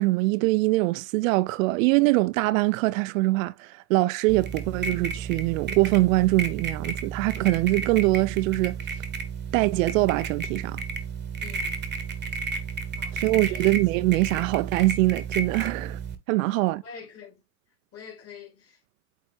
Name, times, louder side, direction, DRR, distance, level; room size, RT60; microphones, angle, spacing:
voice 1, 0.0-9.0 9.5-10.8 13.1-16.0 16.3-16.8, right 20 dB, 65° right, 0.5 m, -23 dB
sound 1, 4.3-16.2, right 5 dB, 25° right, 1.1 m, -33 dB
voice 2, 11.4-11.8 13.0-13.2 13.4-13.7 14.1-14.2 16.5-17.4 17.9-18.8, left 5 dB, 30° left, 3.3 m, -46 dB
8.2 x 4.1 x 3.3 m
supercardioid pair, 125°, 44 cm